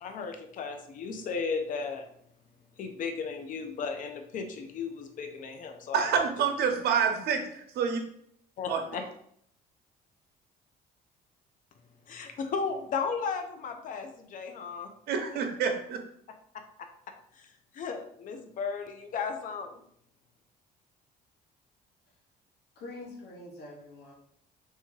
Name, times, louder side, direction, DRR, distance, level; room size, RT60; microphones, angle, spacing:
voice 1, 0.0-2.0 2.8-6.2 8.6-9.0 12.1-14.9 16.8-16.9 17.4-17.5 17.7-19.7, left 5 dB, 50° left, 6 dB, 0.6 m, -35 dB
voice 2, 5.9-8.0 8.7-8.8 15.1-16.0, right 6 dB, 70° right, 5 dB, 0.8 m, -27 dB
voice 3, 22.8-24.1, left 2 dB, 70° left, -1 dB, 1.1 m, -45 dB
3.4 x 2.9 x 4.6 m, 0.67 s
cardioid pair, 110°, 17 cm